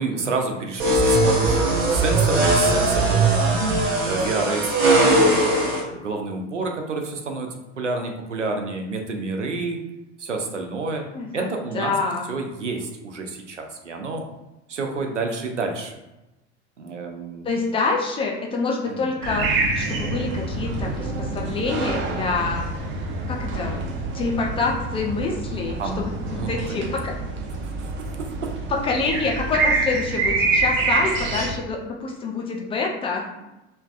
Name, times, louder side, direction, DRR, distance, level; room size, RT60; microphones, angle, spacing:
voice 1, 0.0-3.6 4.1-9.8 10.2-11.0 11.3-11.9 12.3-14.2 14.7-16.0 16.8-17.5 18.8-19.1 25.8-26.9 27.6-27.9 28.4-28.5, right 3 dB, 90° right, 3 dB, 0.5 m, -29 dB
sound 1, 0.8-5.8, right 2 dB, 60° right, 0.9 m, -19 dB
voice 2, 5.0-5.4 11.1-11.5 11.7-12.2 17.4-19.5 19.8-22.6 23.3-23.8 24.1-27.1 28.7-33.5, left 4 dB, 15° left, -1 dB, 0.3 m, -26 dB
sound 2, 19.2-31.5, right 3 dB, 35° right, 0.6 m, -26 dB
3.1 x 2.1 x 2.5 m, 0.98 s
figure-of-eight pair, 70°, 35 cm